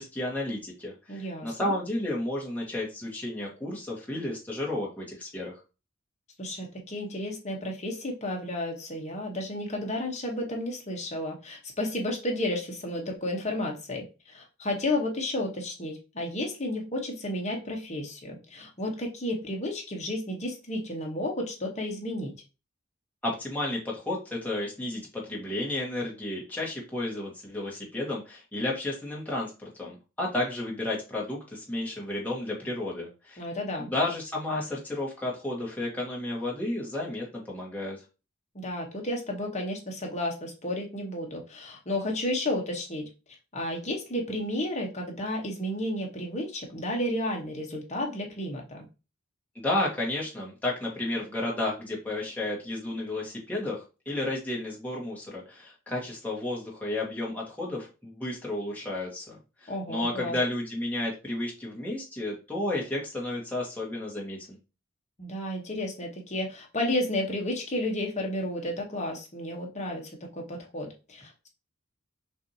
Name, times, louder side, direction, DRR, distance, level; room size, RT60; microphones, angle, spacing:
voice 1, 0.0-5.6 23.2-33.4 33.8-38.0 49.5-64.6, left 1 dB, 10° left, -4 dB, 1.4 m, -32 dB
voice 2, 1.1-1.7 6.4-22.3 33.4-33.9 38.5-43.1 43.5-48.8 59.7-60.4 65.2-71.5, left 1 dB, 35° left, 0 dB, 1.2 m, -32 dB
6.1 x 2.6 x 2.8 m, 0.30 s
head